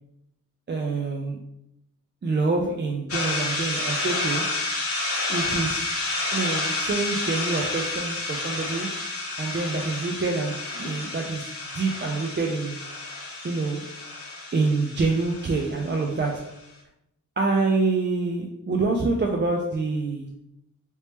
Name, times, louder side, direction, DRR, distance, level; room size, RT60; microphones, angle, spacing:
voice 1, 0.7-1.4 2.2-4.5 5.3-5.9 6.3-8.9 9.4-12.8 13.4-13.9 14.5-16.6 17.4-20.3, right 3 dB, 35° right, 1 dB, 0.4 m, -26 dB
sound 1, 3.1-16.4, left 2 dB, 45° left, 0.8 m, -30 dB
3.0 x 2.8 x 3.3 m, 0.81 s
wide cardioid pair, 85°, 33 cm